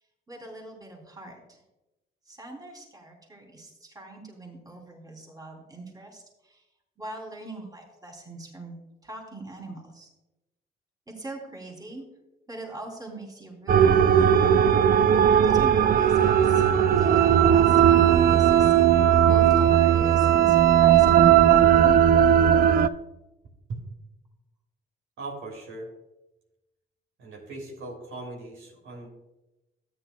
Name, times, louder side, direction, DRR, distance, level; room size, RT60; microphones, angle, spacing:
voice 1, 0.3-1.6 2.3-6.6 7.0-8.7 9.0-10.1 11.2-12.1 12.5-14.5 15.4-21.9, right 2 dB, 20° right, -1 dB, 3.4 m, -42 dB
sound 1, 13.7-22.9, right 9 dB, 50° right, 0.4 m, -18 dB
voice 2, 25.2-25.9 27.2-29.1, right 2 dB, 80° right, -1 dB, 3.2 m, -39 dB
13.0 x 9.7 x 2.3 m, 0.98 s
cardioid pair, 90°, 20 cm